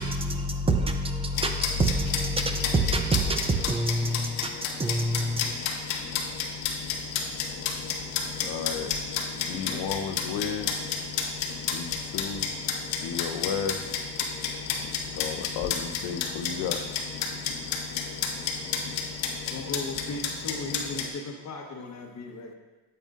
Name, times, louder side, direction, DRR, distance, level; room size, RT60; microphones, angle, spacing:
voice 1, 0.0-5.5, right 1 dB, 15° right, 5 dB, 0.6 m, -27 dB
sound 1, 1.3-21.1, left 6 dB, 85° left, 1.2 m, -32 dB
voice 2, 8.4-8.9 9.3-10.8 11.7-12.5 13.0-14.0 15.1-16.9, left 7 dB, 65° left, 7 dB, 0.8 m, -33 dB
voice 3, 19.4-22.5, left 3 dB, 40° left, 1 dB, 1.3 m, -37 dB
9.0 x 8.0 x 2.6 m, 1.2 s
cardioid pair, 125°, 44 cm